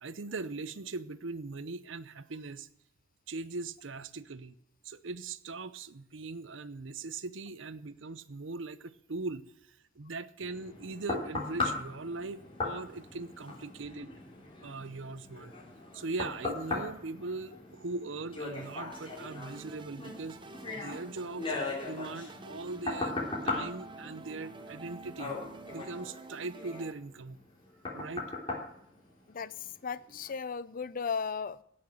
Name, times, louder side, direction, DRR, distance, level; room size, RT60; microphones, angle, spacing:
voice 1, 0.0-2.7 3.3-4.6 4.8-9.4 10.0-14.1 14.6-15.5 15.9-20.4 20.7-21.5 21.8-25.3 25.7-27.4 27.9-28.3, right 3 dB, 75° right, 15 dB, 0.8 m, -40 dB
sound 1, 10.4-29.7 30.2-30.3, left 3 dB, 30° left, 3.6 m, -39 dB
sound 2, 18.9-26.9, right 3 dB, 25° right, 0.8 m, -49 dB
voice 2, 29.3-31.6, left 6 dB, 45° left, 18 dB, 0.5 m, -36 dB
17.5 x 6.5 x 7.8 m, 0.72 s
head